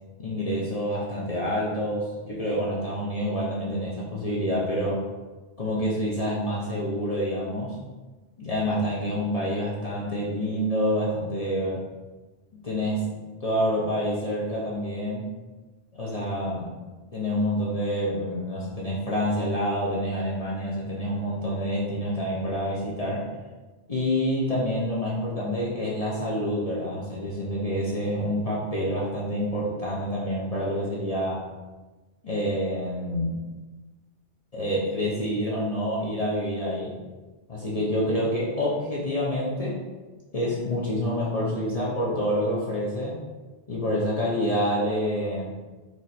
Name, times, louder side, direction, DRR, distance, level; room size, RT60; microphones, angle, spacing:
voice 1, 0.2-5.1 5.6-7.8 8.4-11.8 12.6-13.1 13.4-15.3 15.9-16.7 17.1-23.3 23.9-31.5 32.2-33.4 34.5-36.9 37.5-39.8 40.3-43.2 43.7-45.5, equal, 40° left, -6 dB, 0.8 m, -27 dB
4.7 x 2.7 x 4.2 m, 1.2 s
omnidirectional pair, 1.1 m